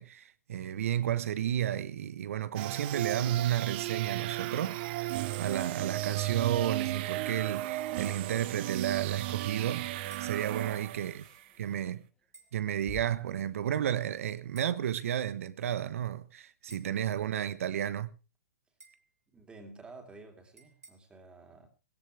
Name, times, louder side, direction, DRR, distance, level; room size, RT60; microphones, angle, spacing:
voice 1, 0.0-9.9 10.2-11.2 11.6-12.0 12.5-18.1, right 10 dB, 60° right, 1.2 m, -32 dB
sound 1, 2.6-11.4, right 16 dB, 45° right, 0.8 m, -35 dB
sound 2, 3.1-3.5 5.1-5.9 7.5-8.4 10.1-10.4 12.3-12.5 14.5-14.8 16.7-17.0 18.8-19.1 20.6-20.9, right 3 dB, 75° right, 3.3 m, -56 dB
sound 3, 9.3-14.8, left 4 dB, 10° left, 1.1 m, -58 dB
voice 2, 10.5-10.8 16.7-17.1 19.3-21.7, right 3 dB, 10° right, 3.4 m, -52 dB
17.0 x 16.5 x 3.4 m
hypercardioid pair, 125°, 8 cm